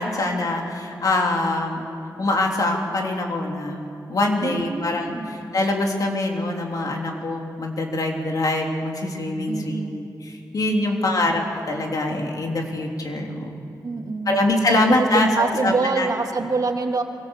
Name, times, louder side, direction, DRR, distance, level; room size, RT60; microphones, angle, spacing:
voice 1, 0.0-1.8 2.2-3.8 4.1-10.0 10.5-11.4 11.7-13.6 14.3-16.1, left 2 dB, 55° left, 1 dB, 3.4 m, -24 dB
voice 2, 4.4-5.4 9.5-10.0 10.8-11.3 13.8-14.4 14.7-17.0, right 4 dB, 55° right, 4 dB, 2.1 m, -26 dB
24.5 x 24.5 x 7.3 m, 2.5 s
wide cardioid pair, 120°, 7 cm